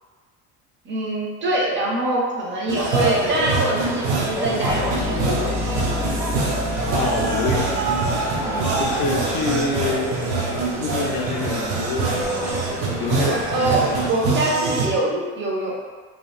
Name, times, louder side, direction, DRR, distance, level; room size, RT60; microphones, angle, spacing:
voice 1, 0.8-5.5 8.5-8.8 13.5-15.7, right 2 dB, 35° right, -3 dB, 0.7 m, -24 dB
sound 1, 2.7-14.1, right 1 dB, 10° right, 0.3 m, -32 dB
sound 2, 2.7-14.9, right 3 dB, 80° right, 0.6 m, -25 dB
sound 3, 4.7-10.7, left 4 dB, 60° right, 1.0 m, -31 dB
voice 2, 6.9-7.7 8.8-12.6 13.0-13.5 13.7-14.0, left 4 dB, 80° left, 2 dB, 0.5 m, -27 dB
2.8 x 2.2 x 2.4 m, 1.5 s
supercardioid pair, 90°, 34 cm